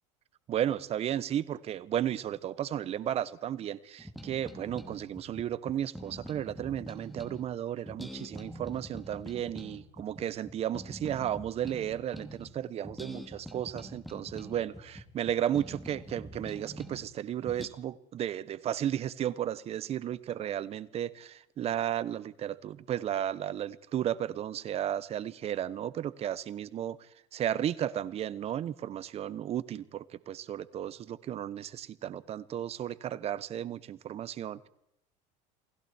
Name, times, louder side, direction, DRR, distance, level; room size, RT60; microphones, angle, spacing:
voice 1, 0.5-27.0 27.3-34.7, right 10 dB, 40° right, 17 dB, 1.3 m, -34 dB
sound 1, 4.0-7.5 7.9-12.5 12.8-17.1 17.5-17.7, equal, ahead, 2.9 m, -45 dB
29.0 x 20.0 x 4.6 m, 0.77 s
supercardioid pair, 120°, 16 cm